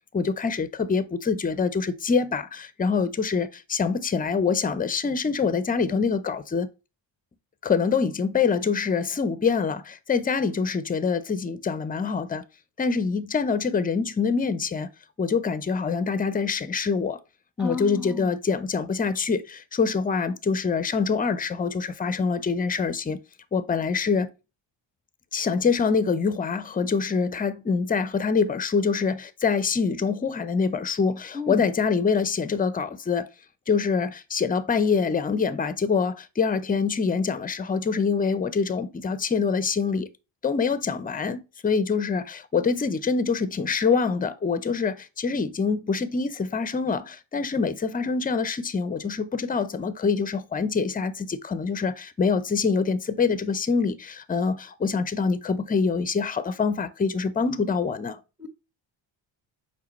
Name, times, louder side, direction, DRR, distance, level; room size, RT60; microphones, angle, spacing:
voice 1, 0.1-6.7 7.6-12.4 12.8-14.9 15.2-17.2 17.6-23.2 23.5-24.3 25.3-33.3 33.7-40.1 40.4-58.2, left 5 dB, 20° left, 0.5 m, -25 dB
voice 2, 17.6-18.3 31.3-31.6 58.4-58.5, left 4 dB, ahead, 1.0 m, -31 dB
4.9 x 3.6 x 3.0 m
cardioid pair, 90°, 49 cm